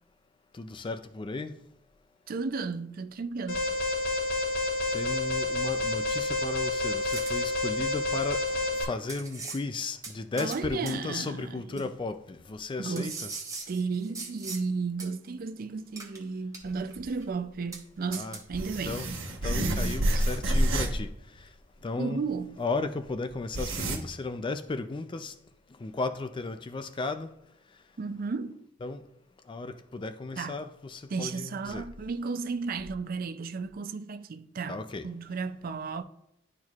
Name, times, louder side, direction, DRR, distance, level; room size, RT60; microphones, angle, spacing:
voice 1, 0.5-1.6 4.9-13.3 18.1-18.4 18.9-19.1 19.4-21.5 21.8-22.2 22.6-25.3 25.8-27.3 28.8-29.0 29.5-31.9 34.7-35.1, left 3 dB, 25° left, 0.4 m, -35 dB
voice 2, 2.3-3.7 10.4-11.9 12.8-13.2 13.7-19.0 20.1-20.2 22.0-22.6 28.0-28.6 30.4-30.6 31.1-36.0, right 4 dB, 45° right, 0.4 m, -34 dB
Alarm, 3.5-8.8, left 2 dB, 85° left, 2.4 m, -29 dB
sound 1, 7.1-7.4 8.5-8.6 9.1-9.6 10.0-10.6 10.9-11.0 11.8-11.9 13.0-14.6 15.0-15.1 16.0-16.2 16.5-16.9 17.2-17.3 17.7-17.8 18.1-18.4, right 4 dB, 15° right, 0.9 m, -40 dB
sound 2, 16.6-16.7 17.0-17.1 18.5-21.1 21.4-21.5 22.7-22.8 23.3-24.0, right 1 dB, 85° right, 1.2 m, -28 dB
11.0 x 4.5 x 2.4 m
head